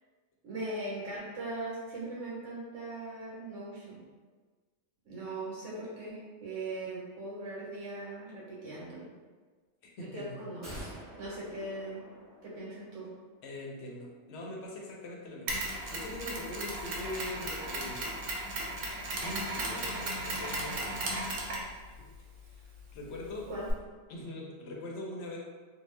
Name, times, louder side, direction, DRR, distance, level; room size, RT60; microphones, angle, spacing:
voice 1, 0.4-4.0 5.0-9.1 10.0-10.9 11.2-12.0 12.4-13.1 23.5-23.7, right 2 dB, 65° right, -6 dB, 1.2 m, -40 dB
voice 2, 9.8-10.4 11.2-11.4 13.4-18.2 19.2-21.0 21.9-22.0 22.4-23.5 24.1-25.4, left 1 dB, 60° left, -1 dB, 0.7 m, -42 dB
sound 1, 10.6-13.0 13.3-13.4, equal, 25° right, 1.1 m, -47 dB
Mechanisms, 15.5-23.7, right 1 dB, 90° right, 1.1 m, -37 dB
2.7 x 2.2 x 3.2 m, 1.4 s
omnidirectional pair, 1.5 m